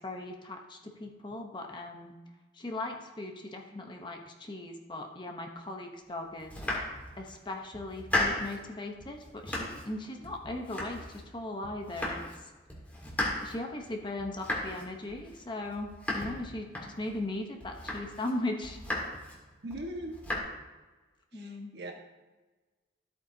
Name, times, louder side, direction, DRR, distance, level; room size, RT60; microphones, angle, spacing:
voice 1, 0.0-2.2 2.5-6.5 7.2-12.2 13.4-18.8 21.3-21.7, left 2 dB, 25° left, 2 dB, 1.0 m, -38 dB
Domestic sounds home sounds, 6.4-7.4 7.7-8.6 9.0-9.9 10.2-11.3 11.6-12.4 12.7-17.2 17.6-18.3 18.6-19.4 19.7-20.4, left 1 dB, 10° left, 1.8 m, -36 dB
voice 2, 19.6-20.2 21.3-21.9, right 1 dB, 60° right, 1 dB, 1.5 m, -40 dB
13.5 x 8.4 x 2.8 m, 1.2 s
head